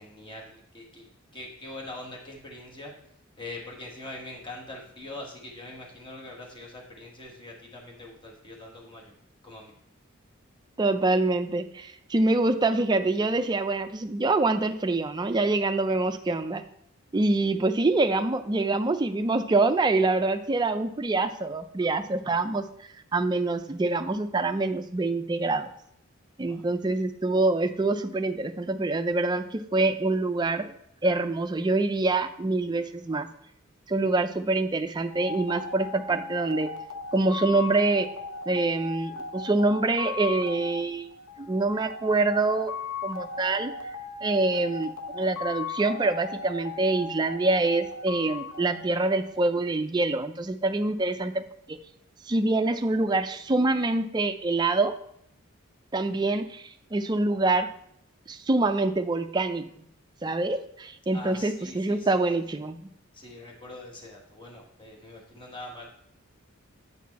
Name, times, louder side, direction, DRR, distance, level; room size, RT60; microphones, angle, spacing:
voice 1, 0.0-2.9 3.4-9.1 9.4-9.7 26.5-26.6 61.1-62.1 63.1-65.9, left 2 dB, 20° left, -1 dB, 1.1 m, -43 dB
voice 2, 10.8-16.6 17.1-22.7 23.1-25.7 26.4-30.7 31.0-33.3 33.9-36.7 37.1-38.1 38.5-41.1 41.4-42.7 43.0-43.7 44.2-51.8 52.3-54.9 55.9-57.7 58.3-59.7 60.2-62.9, right 2 dB, 20° right, 8 dB, 0.3 m, -25 dB
sound 1, 35.1-49.6, left 4 dB, 85° left, 0.7 m, -38 dB
8.3 x 4.3 x 4.1 m, 0.72 s
head